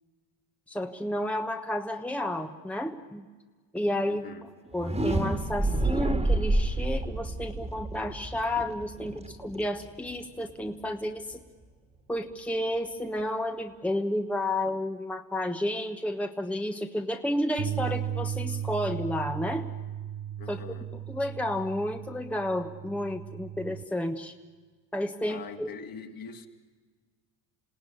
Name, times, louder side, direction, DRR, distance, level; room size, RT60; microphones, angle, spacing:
voice 1, 0.7-3.3 3.7-4.3 4.7-11.4 12.1-19.7 20.5-20.6 21.1-24.3 24.9-25.7, left 1 dB, 5° left, 5 dB, 1.3 m, -31 dB
voice 2, 4.1-4.5 20.4-20.9 25.2-26.5, left 5 dB, 45° left, 4 dB, 2.9 m, -43 dB
sound 1, 4.7-10.5, right 2 dB, 15° right, 2.1 m, -29 dB
sound 2, 17.6-23.8, right 10 dB, 45° right, 0.9 m, -36 dB
28.0 x 17.5 x 9.9 m, 1.4 s
supercardioid pair, 90°, 47 cm